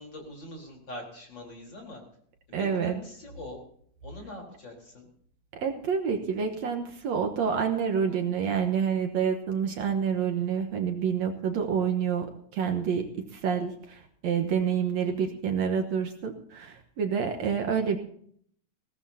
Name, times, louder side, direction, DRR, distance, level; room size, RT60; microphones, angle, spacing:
voice 1, 0.0-2.0 2.5-3.6 4.0-5.1, left 1 dB, 35° left, 0 dB, 4.6 m, -43 dB
voice 2, 2.5-3.0 5.6-12.3 12.5-18.0, right 7 dB, 65° right, 5 dB, 2.2 m, -28 dB
21.5 x 17.5 x 2.8 m, 0.62 s
omnidirectional pair, 3.7 m